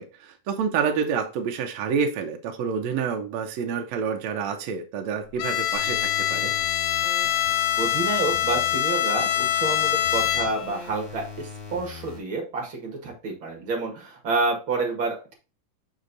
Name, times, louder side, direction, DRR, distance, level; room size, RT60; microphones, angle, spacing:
voice 1, 0.0-6.5, right 6 dB, 75° right, 4 dB, 1.6 m, -28 dB
Bowed string instrument, 5.4-10.8, left 12 dB, 80° left, 2.1 m, -24 dB
sound 1, 5.7-8.7 9.2-12.2, left 4 dB, 45° left, 4.4 m, -41 dB
voice 2, 7.8-15.3, right 3 dB, 45° right, 0 dB, 2.0 m, -29 dB
6.4 x 6.2 x 2.6 m, 0.33 s
omnidirectional pair, 3.8 m